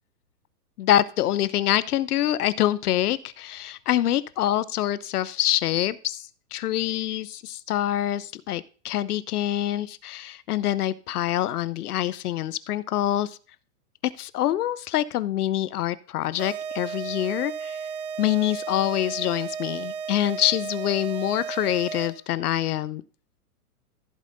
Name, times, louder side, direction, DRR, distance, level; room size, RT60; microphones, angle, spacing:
voice 1, 0.8-13.4 14.2-17.8 18.2-23.0, left 13 dB, 70° left, 17 dB, 0.6 m, -25 dB
sound 1, 16.4-22.3, right 6 dB, 25° right, 0.6 m, -34 dB
15.0 x 7.6 x 2.6 m, 0.39 s
hypercardioid pair, 160°, 47 cm